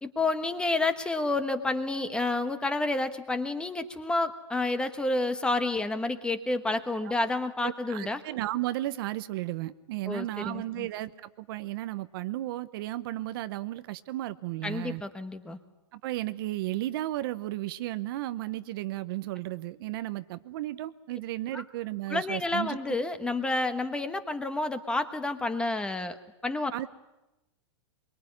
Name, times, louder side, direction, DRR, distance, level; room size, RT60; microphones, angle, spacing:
voice 1, 0.0-8.2 10.0-10.9 14.6-15.6 21.5-21.6 22.1-26.2 26.4-26.7, left 2 dB, 5° left, 9 dB, 1.2 m, -29 dB
voice 2, 7.6-15.0 15.9-22.8 26.7-26.9, right 16 dB, 50° right, 13 dB, 0.9 m, -34 dB
23.5 x 23.5 x 9.8 m, 0.99 s
hypercardioid pair, 155°, 16 cm